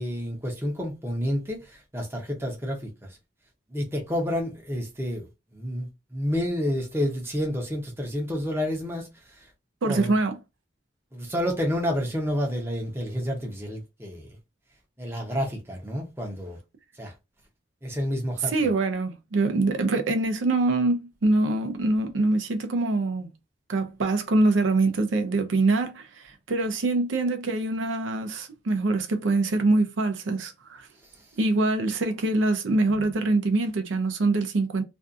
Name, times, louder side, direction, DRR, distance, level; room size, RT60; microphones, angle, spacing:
voice 1, 0.0-2.9 3.7-5.3 5.5-9.1 9.8-10.2 11.1-14.3 15.0-16.6 17.0-17.1 17.8-18.5, equal, 10° right, 0.6 m, -29 dB
voice 2, 9.8-10.3 18.5-23.3 23.7-30.9 31.4-34.8, right 2 dB, 80° right, 0.5 m, -24 dB
2.5 x 2.3 x 2.4 m
head